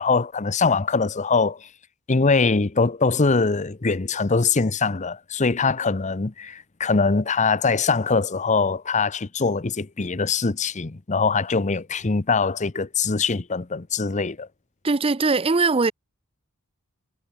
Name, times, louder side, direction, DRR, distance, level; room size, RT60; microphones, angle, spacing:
voice 1, 0.0-1.7 2.1-14.5, left 4 dB, 35° left, 0.8 m, -22 dB
voice 2, 14.8-15.9, right 3 dB, 25° right, 0.6 m, -20 dB
head